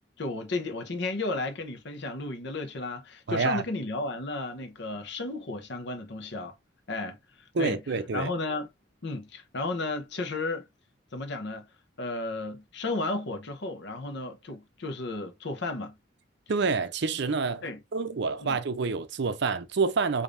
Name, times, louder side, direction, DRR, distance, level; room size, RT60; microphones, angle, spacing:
voice 1, 0.2-6.5 6.9-8.7 9.0-10.7 11.1-11.7 12.0-16.0 17.6-17.8 18.4-18.6, left 2 dB, 60° left, 0.9 m, -33 dB
voice 2, 3.3-3.6 7.5-8.3 16.5-17.6 17.9-20.2, right 4 dB, 60° right, 0.6 m, -27 dB
5.1 x 2.7 x 2.5 m
head